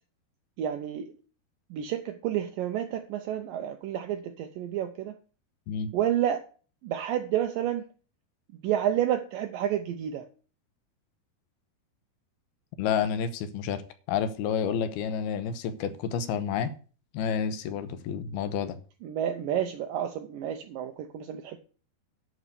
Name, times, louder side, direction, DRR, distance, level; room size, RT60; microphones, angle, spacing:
voice 1, 0.6-1.1 1.7-5.1 5.9-6.4 6.8-7.9 8.6-10.2 19.0-21.6, right 10 dB, 85° right, 7 dB, 2.0 m, -30 dB
voice 2, 12.8-13.8 14.1-16.7 17.1-18.8, left 7 dB, 75° left, 11 dB, 2.7 m, -29 dB
11.0 x 5.1 x 8.2 m, 0.39 s
omnidirectional pair, 4.8 m